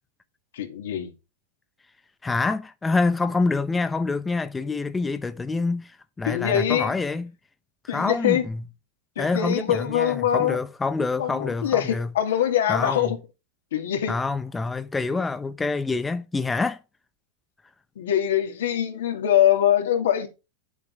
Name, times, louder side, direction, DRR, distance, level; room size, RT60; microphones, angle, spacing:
voice 1, 0.5-1.1 6.3-6.9 7.9-8.4 9.2-10.6 11.2-13.2 13.7-14.2 18.0-20.3, left 10 dB, 80° left, 2.5 m, -23 dB
voice 2, 2.2-7.3 7.8-8.6 9.2-12.1 12.7-13.1 14.1-16.8, left 3 dB, 15° left, 0.8 m, -26 dB
9.3 x 7.3 x 4.7 m
hypercardioid pair, 115°, 0 cm